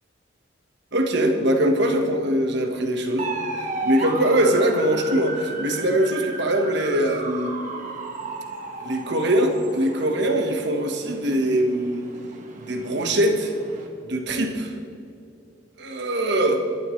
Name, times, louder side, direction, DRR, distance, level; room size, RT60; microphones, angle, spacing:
voice 1, 0.9-3.3 3.8-7.5 8.8-12.0 12.6-13.5 14.0-14.7 15.8-16.6, right 1 dB, 55° right, 3 dB, 1.4 m, -22 dB
sound 1, 3.2-13.9, right 3 dB, 40° right, 1.5 m, -34 dB
21.5 x 11.5 x 3.2 m, 2.6 s
head